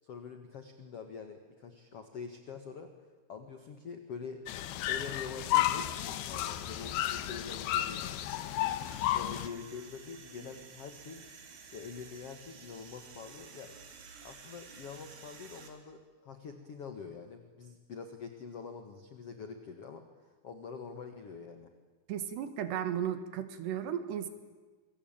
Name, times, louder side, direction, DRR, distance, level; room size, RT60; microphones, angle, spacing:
voice 1, 0.0-2.9 3.3-4.4 4.9-8.4 9.1-11.2 11.7-13.8 14.2-21.7, left 5 dB, 50° left, 7 dB, 2.1 m, -45 dB
sound 1, 4.5-9.5, left 13 dB, 75° left, 2.9 m, -32 dB
sound 2, 5.9-15.7, right 5 dB, 65° right, 4.8 m, -53 dB
voice 2, 22.1-24.3, right 9 dB, 85° right, 10 dB, 3.9 m, -35 dB
27.5 x 23.5 x 8.9 m, 1.3 s
omnidirectional pair, 4.7 m